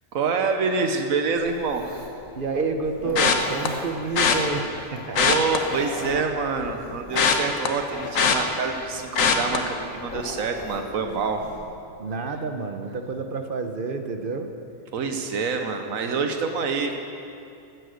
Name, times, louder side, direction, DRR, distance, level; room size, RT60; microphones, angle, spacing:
voice 1, 0.1-2.0 5.1-11.4 14.9-17.0, right 4 dB, 85° right, 5 dB, 1.3 m, -26 dB
Dog, 1.4-11.6, left 1 dB, 20° left, 2.4 m, -40 dB
voice 2, 2.3-5.2 12.0-14.5, right 4 dB, 45° right, 6 dB, 0.9 m, -29 dB
sound 1, 3.2-3.7 4.2-4.4 5.0-6.3 6.6-8.8 9.2-9.6 10.0-10.3 10.6-10.7, left 6 dB, 75° left, 1.3 m, -22 dB
15.0 x 9.0 x 6.4 m, 2.7 s
omnidirectional pair, 1.4 m